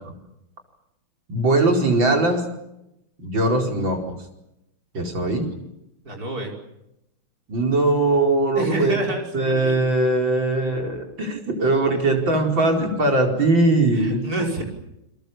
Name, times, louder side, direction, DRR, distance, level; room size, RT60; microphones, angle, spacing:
voice 1, 1.3-2.4 3.2-4.2 4.9-5.5 7.5-9.1 9.3-14.3, right 2 dB, 60° right, 2 dB, 5.4 m, -20 dB
voice 2, 6.0-6.5 8.6-9.7 13.9-14.6, right 2 dB, 40° right, 1 dB, 5.7 m, -27 dB
29.0 x 22.5 x 7.2 m, 0.86 s
omnidirectional pair, 2.4 m